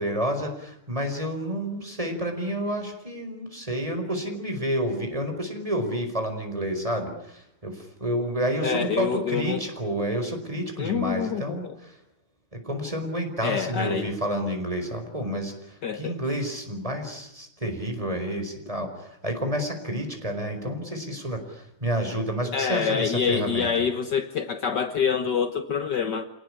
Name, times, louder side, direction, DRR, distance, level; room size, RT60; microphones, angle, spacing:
voice 1, 0.0-12.0 12.5-23.7, equal, 15° right, 5 dB, 4.8 m, -30 dB
voice 2, 8.6-9.6 10.8-11.7 13.4-14.1 15.8-16.2 22.5-26.2, left 6 dB, 60° left, 9 dB, 1.7 m, -26 dB
27.0 x 19.0 x 9.8 m, 0.75 s
omnidirectional pair, 2.3 m